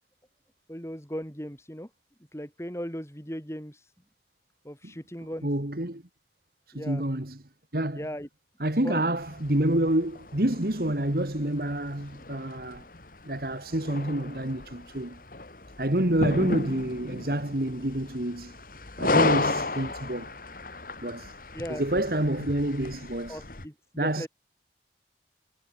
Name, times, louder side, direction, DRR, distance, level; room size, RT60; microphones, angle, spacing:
voice 1, 0.7-1.9 2.3-3.9 4.6-5.5 6.7-7.0 7.9-8.3 8.8-9.1 21.5-21.8 23.3-24.3, equal, 15° left, 6.3 m, -37 dB
voice 2, 5.4-6.0 6.7-7.4 7.7-8.1 8.6-12.8 13.2-15.2 15.8-18.6 19.0-20.3 21.0-21.3 21.7-23.4 24.0-24.3, right 1 dB, 55° right, 2.2 m, -28 dB
sound 1, 9.2-23.7, left 2 dB, 50° left, 1.9 m, -34 dB
head